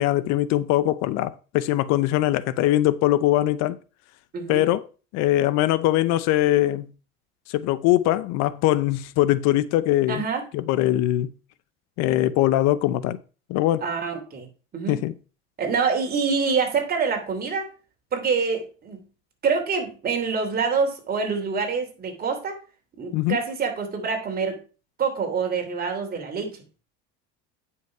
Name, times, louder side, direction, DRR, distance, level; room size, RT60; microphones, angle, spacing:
voice 1, 0.0-3.8 4.5-4.9 5.1-6.9 7.5-10.2 10.5-11.3 12.0-13.2 13.5-13.8 14.9-15.1 23.1-23.4, left 14 dB, 65° left, 0.7 m, -22 dB
voice 2, 4.3-4.7 10.1-10.4 13.8-14.5 14.7-15.0 15.6-17.7 18.1-19.0 19.4-22.6 23.0-24.6 25.0-26.6, right 5 dB, 30° right, 2.9 m, -26 dB
9.3 x 5.7 x 4.7 m
supercardioid pair, 125°, 29 cm